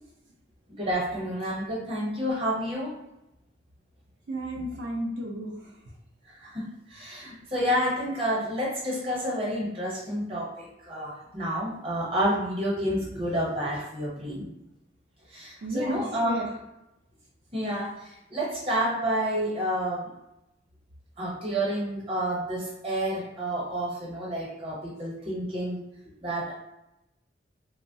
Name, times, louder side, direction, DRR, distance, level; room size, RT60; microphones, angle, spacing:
voice 1, 0.8-2.9 6.3-6.6 6.9-14.5 15.3-16.5 17.5-20.0 21.2-25.8 26.2-26.6, equal, 30° right, -4 dB, 0.8 m, -29 dB
voice 2, 4.3-5.5 15.6-16.4, right 1 dB, 75° right, -4 dB, 0.5 m, -33 dB
3.0 x 2.0 x 2.6 m, 0.89 s
head